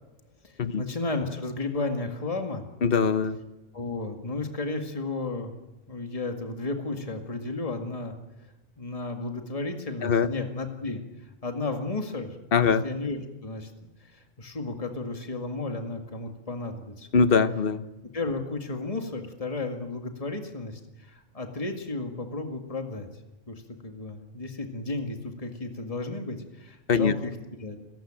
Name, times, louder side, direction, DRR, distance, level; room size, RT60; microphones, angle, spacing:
voice 1, 0.4-2.6 3.7-5.5 5.9-8.5 8.8-11.0 11.4-12.4 12.6-17.1 18.1-23.1 23.5-27.8, left 3 dB, 30° left, 4 dB, 2.1 m, -33 dB
voice 2, 2.8-3.4 10.0-10.3 12.5-12.8 17.1-17.8 26.9-27.1, left 5 dB, 50° left, 12 dB, 1.2 m, -22 dB
29.5 x 15.5 x 9.0 m, 1.0 s
omnidirectional pair, 1.3 m